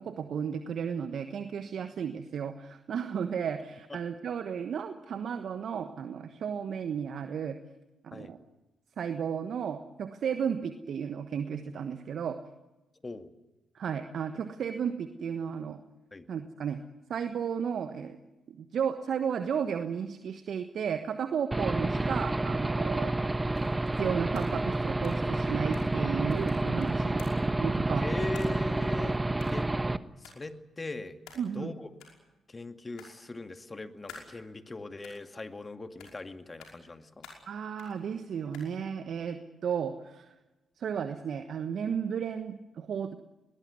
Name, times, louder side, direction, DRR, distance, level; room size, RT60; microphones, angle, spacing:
voice 1, 0.0-7.6 8.0-8.4 9.0-12.4 13.7-15.8 16.3-16.8 17.1-18.2 18.5-23.1 24.0-27.2 27.6-28.0 31.4-31.7 37.5-40.3 40.8-43.2, right 7 dB, 60° right, 9 dB, 1.3 m, -33 dB
Aircraft / Engine, 21.5-30.0, right 2 dB, 20° right, 1.2 m, -29 dB
sound 1, 22.3-22.4 23.5-24.0 24.3-26.0 26.3-27.5 28.3-28.9 29.4-29.8 30.2-30.5 31.3-31.7 31.9-32.2 33.0-33.5 34.1-34.8 35.0-35.6 36.0-36.3 36.6-37.0 37.2-38.0 38.5-38.8, left 5 dB, 75° left, 5.5 m, -52 dB
voice 2, 28.0-29.2 29.5-29.7 30.2-31.2 31.5-31.9 32.5-37.3, left 2 dB, 30° left, 8 dB, 2.2 m, -40 dB
21.5 x 20.0 x 9.7 m, 1.0 s
hypercardioid pair, 40°, 0 cm